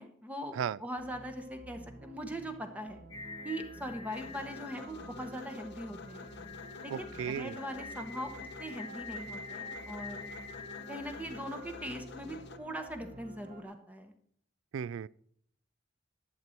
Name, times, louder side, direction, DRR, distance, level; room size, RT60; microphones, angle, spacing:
voice 1, 0.0-3.0 3.4-6.3 6.8-8.3 8.6-10.3 10.9-14.1, equal, 10° right, 0.9 m, -41 dB
sound 1, 1.0-13.6, right 1 dB, 45° right, 0.7 m, -52 dB
Singing, 3.1-11.9, left 3 dB, 20° left, 1.0 m, -47 dB
sound 2, 4.1-12.6, left 4 dB, 60° left, 0.7 m, -50 dB
voice 2, 6.9-7.6 14.7-15.1, right 8 dB, 80° right, 0.3 m, -35 dB
11.0 x 7.7 x 4.4 m
head